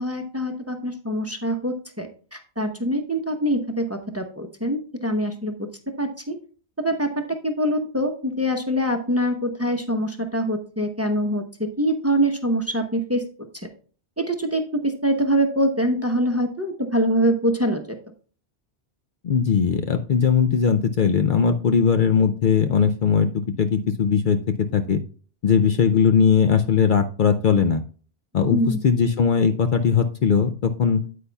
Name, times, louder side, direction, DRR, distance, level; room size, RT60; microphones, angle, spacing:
voice 1, 0.0-5.5 6.0-6.4 6.8-7.1 7.4-13.2 14.2-18.0 28.5-28.8, equal, 15° right, 4 dB, 0.8 m, -24 dB
voice 2, 19.2-24.4 24.7-25.0 25.4-27.8 28.3-31.0, left 6 dB, 60° left, 7 dB, 0.6 m, -19 dB
9.3 x 8.4 x 2.3 m, 0.40 s
omnidirectional pair, 1.1 m